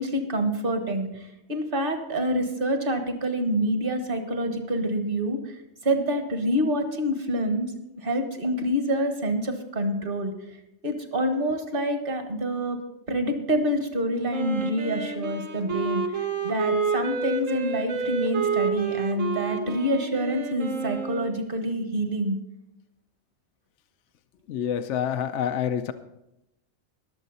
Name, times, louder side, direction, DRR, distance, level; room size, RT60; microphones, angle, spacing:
voice 1, 0.0-5.6 5.8-10.3 10.8-12.8 13.1-22.4, right 1 dB, 45° right, 6 dB, 1.6 m, -27 dB
Wind instrument woodwind instrument, 14.3-21.4, right 5 dB, 75° right, 1.5 m, -29 dB
voice 2, 24.5-25.9, left 9 dB, 65° left, 9 dB, 0.9 m, -27 dB
21.0 x 7.5 x 4.1 m, 0.88 s
omnidirectional pair, 1.3 m